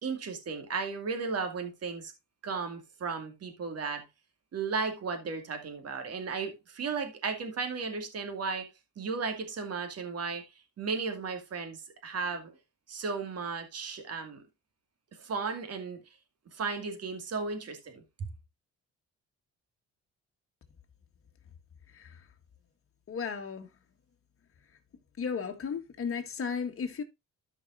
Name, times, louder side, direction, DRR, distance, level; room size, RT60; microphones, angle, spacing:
voice 1, 0.0-2.1 2.4-4.0 4.5-8.7 9.0-10.4 10.8-12.5 12.9-14.4 15.1-16.0 16.5-18.0, right 4 dB, 55° right, 2.4 m, -35 dB
voice 2, 23.1-23.7 25.2-27.0, left 6 dB, 45° left, 1.7 m, -34 dB
13.5 x 5.4 x 2.6 m
cardioid pair, 90°, 30 cm